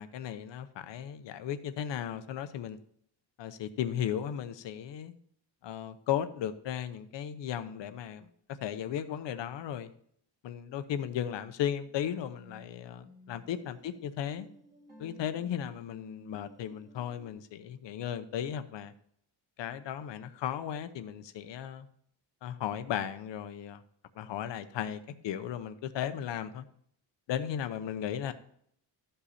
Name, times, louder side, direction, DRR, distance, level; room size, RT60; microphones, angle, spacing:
voice 1, 0.0-2.8 3.4-5.1 5.6-8.3 8.6-9.9 10.4-14.5 15.0-18.9 19.6-21.9 22.4-23.8 24.2-26.6 27.3-28.3, left 9 dB, 80° left, 11 dB, 0.9 m, -36 dB
hungarian dance slowed, 11.5-17.3, left 2 dB, 20° right, 1.9 m, -56 dB
13.5 x 5.6 x 4.2 m, 0.65 s
wide cardioid pair, 170°, 43 cm